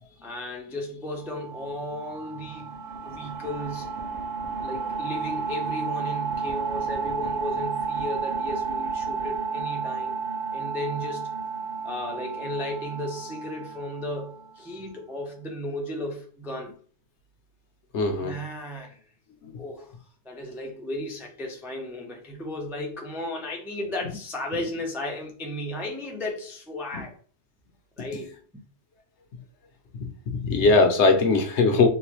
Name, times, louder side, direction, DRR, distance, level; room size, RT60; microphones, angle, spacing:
voice 1, 0.0-2.8 3.0-4.0 4.6-10.2 10.5-11.4 11.8-16.8 18.2-19.0 19.6-19.9 20.2-27.2 28.0-28.3, left 1 dB, 5° right, 0.3 m, -35 dB
sound 1, 1.2-14.7, right 5 dB, 70° right, 1.3 m, -32 dB
voice 2, 17.9-18.3 19.4-19.6 30.4-31.9, left 3 dB, 65° left, 0.9 m, -20 dB
3.9 x 2.2 x 3.0 m
omnidirectional pair, 1.4 m